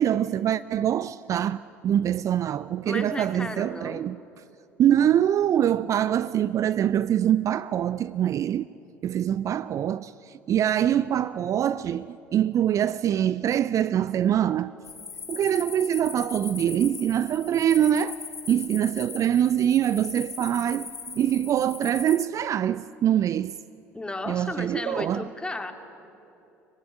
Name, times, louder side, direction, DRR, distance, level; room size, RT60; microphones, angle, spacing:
voice 1, 0.0-4.2 4.8-8.7 9.0-14.7 15.3-18.2 18.5-23.6 24.3-25.3, right 10 dB, 40° right, 0.5 m, -24 dB
voice 2, 2.8-4.0 23.9-25.7, left 2 dB, 10° left, 2.4 m, -34 dB
sound 1, 14.8-22.3, left 5 dB, 90° left, 0.8 m, -39 dB
24.0 x 19.5 x 9.8 m
figure-of-eight pair, 60°, 8 cm